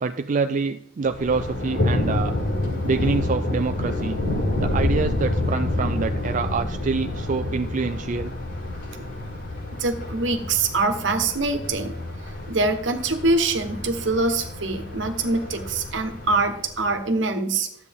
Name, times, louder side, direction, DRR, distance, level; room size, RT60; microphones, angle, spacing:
voice 1, 0.0-2.3 2.8-4.2 4.6-8.3, right 4 dB, 40° right, 8 dB, 0.4 m, -26 dB
Thunder, 1.1-17.0, left 2 dB, 80° left, 4.7 m, -28 dB
voice 2, 9.8-11.9 12.5-17.7, right 3 dB, 70° right, 7 dB, 1.2 m, -24 dB
12.5 x 8.2 x 3.6 m, 0.70 s
head